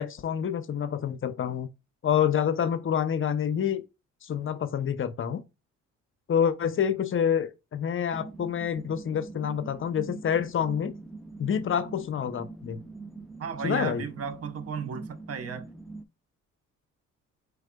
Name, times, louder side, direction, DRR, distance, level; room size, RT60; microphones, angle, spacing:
voice 1, 0.0-1.7 2.0-3.8 4.2-5.4 6.3-10.9 11.4-12.8 13.6-14.0, left 8 dB, 45° left, 0.6 m, -27 dB
sound 1, 8.1-16.0, right 3 dB, ahead, 0.5 m, -43 dB
voice 2, 13.4-15.7, right 6 dB, 50° right, 0.7 m, -34 dB
4.8 x 3.4 x 2.2 m
cardioid pair, 90°, 30 cm